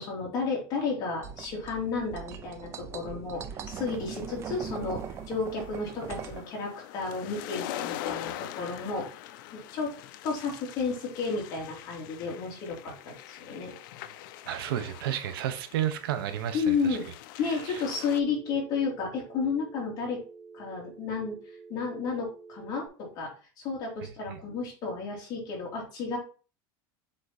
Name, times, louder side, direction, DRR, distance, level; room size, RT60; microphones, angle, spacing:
voice 1, 0.0-9.1 9.5-9.9 10.2-13.7 16.5-17.1 17.4-20.2 20.5-21.4 21.7-23.3 23.6-26.2, left 5 dB, 35° left, 3.1 m, -32 dB
sound 1, 1.2-6.4, right 8 dB, 20° right, 0.5 m, -40 dB
sound 2, 4.0-18.2, left 13 dB, 60° left, 0.6 m, -43 dB
voice 2, 14.5-17.0 17.4-17.8 24.3-24.4, right 11 dB, 80° right, 1.0 m, -32 dB
Telephone, 17.9-22.9, right 5 dB, ahead, 2.5 m, -49 dB
7.5 x 4.0 x 4.2 m
supercardioid pair, 170°, 12 cm